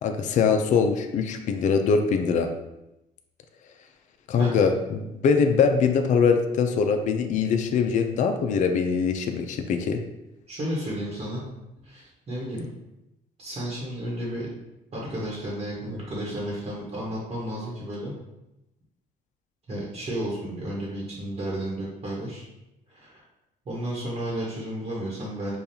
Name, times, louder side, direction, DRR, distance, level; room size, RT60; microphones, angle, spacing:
voice 1, 0.0-2.5 4.3-10.0, left 5 dB, 45° left, 5 dB, 0.4 m, -22 dB
voice 2, 10.5-11.5 11.8-12.7 13.4-14.5 14.9-18.1 19.7-22.4 22.9-23.2 23.6-25.6, right 1 dB, 35° right, -5 dB, 1.1 m, -32 dB
5.1 x 2.3 x 2.8 m, 0.92 s
cardioid pair, 110°, 17 cm